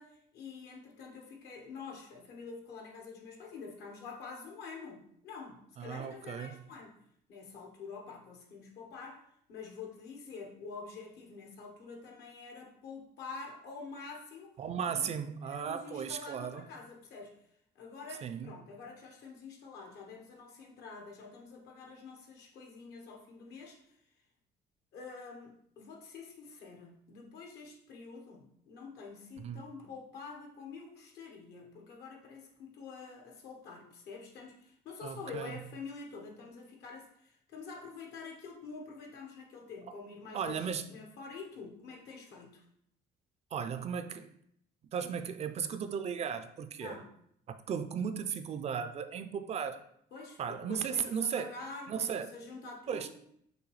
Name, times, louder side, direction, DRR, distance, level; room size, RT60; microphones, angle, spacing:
voice 1, 0.0-7.0 7.3-9.2 9.5-14.5 14.9-15.0 15.4-17.3 17.7-23.8 24.9-42.6 46.8-47.1 50.1-53.1, left 4 dB, 75° left, 2 dB, 1.1 m, -47 dB
voice 2, 5.8-6.6 14.6-16.7 18.2-18.5 29.4-29.6 35.0-35.6 40.3-40.9 43.5-44.3 44.9-47.0 47.7-49.8 50.4-51.5 51.9-52.3 52.9-53.1, right 7 dB, 40° right, 10 dB, 0.4 m, -36 dB
6.3 x 2.6 x 3.1 m, 0.70 s
cardioid pair, 110°, 17 cm